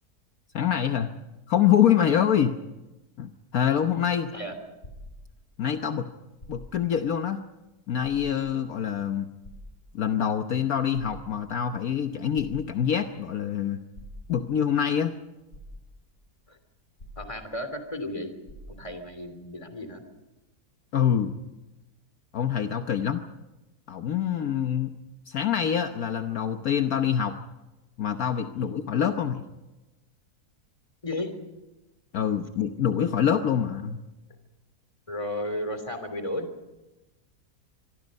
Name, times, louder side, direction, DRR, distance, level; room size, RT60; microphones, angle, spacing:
voice 1, 0.5-1.1 1.5-2.5 3.2-4.3 5.6-6.1 6.5-7.4 7.9-9.3 9.9-13.8 14.3-15.1 20.9-21.3 22.3-23.2 23.9-24.9 25.3-27.4 28.0-29.4 32.1-34.0, left 9 dB, 65° left, 7 dB, 1.4 m, -25 dB
sound 1, 4.8-5.7 6.3-7.0 7.4-7.5 8.0-8.7 9.4-10.3 10.8-11.6 12.4-13.1 13.9-14.6 15.2-15.3 15.5-16.2 17.0-17.8 18.1-18.2 18.5-19.1 19.8-19.9, equal, 45° left, 6.4 m, -47 dB
voice 2, 17.2-18.3 18.7-20.0 28.5-28.7 31.0-31.3 35.1-36.5, left 1 dB, 20° left, 8 dB, 3.2 m, -33 dB
26.0 x 23.0 x 5.4 m, 1.0 s
omnidirectional pair, 1.7 m